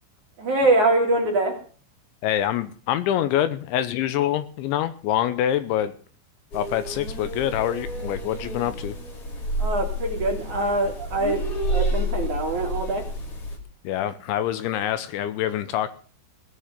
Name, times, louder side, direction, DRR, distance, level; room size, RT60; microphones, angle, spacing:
voice 1, 0.4-1.6 9.6-13.0, right 2 dB, 50° right, 1 dB, 3.0 m, -23 dB
voice 2, 2.2-5.9 6.5-9.0 13.8-15.9, left 11 dB, 80° left, 12 dB, 3.1 m, -25 dB
sound 1, 6.5-13.6, equal, 40° left, 2.7 m, -29 dB
17.5 x 6.8 x 7.5 m, 0.41 s
omnidirectional pair, 5.6 m